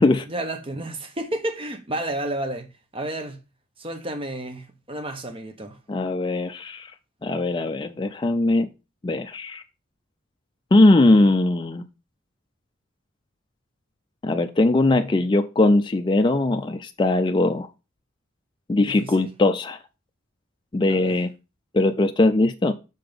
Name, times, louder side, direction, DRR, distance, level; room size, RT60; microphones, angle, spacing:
voice 1, 0.2-3.4 3.8-5.8 18.8-19.3 20.9-21.2, right 1 dB, 25° right, 0.8 m, -31 dB
voice 2, 5.9-6.9 7.2-8.7 9.0-9.6 10.7-11.8 14.2-17.7 18.7-19.8 20.7-21.3 21.7-22.7, left 2 dB, 20° left, 0.3 m, -20 dB
5.8 x 3.7 x 5.0 m
head